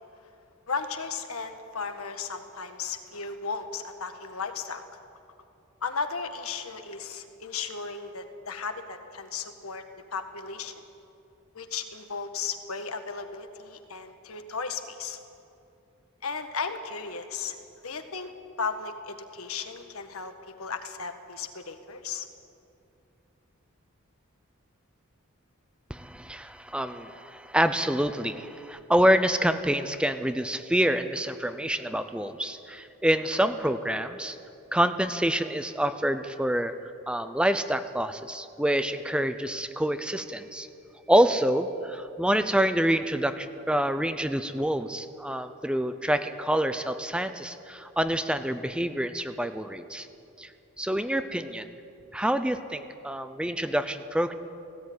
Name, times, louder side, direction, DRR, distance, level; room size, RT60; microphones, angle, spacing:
voice 1, 0.7-4.8 5.8-9.8 10.1-10.7 11.5-15.2 16.2-17.6 17.8-18.3 18.6-22.3, left 5 dB, 80° left, 7 dB, 1.6 m, -35 dB
voice 2, 25.9-34.4 34.7-36.7 37.1-40.7 41.1-50.1 50.4-50.5 50.8-51.7 52.1-54.3, right 1 dB, 5° right, 10 dB, 0.5 m, -27 dB
17.5 x 16.5 x 9.5 m, 2.7 s
head